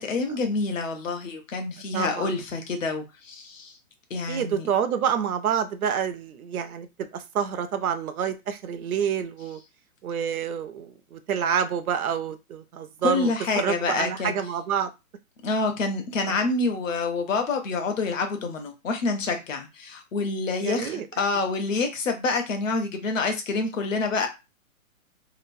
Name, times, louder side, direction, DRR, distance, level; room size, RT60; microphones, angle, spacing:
voice 1, 0.0-3.8 4.1-4.7 13.0-14.4 15.4-24.3, left 3 dB, 60° left, 0.8 m, -27 dB
voice 2, 1.9-2.4 4.3-6.9 7.1-9.6 10.0-14.9 16.2-16.4 20.6-21.1, right 8 dB, 80° right, 0.6 m, -28 dB
2.9 x 2.1 x 2.5 m
hypercardioid pair, 170°, 43 cm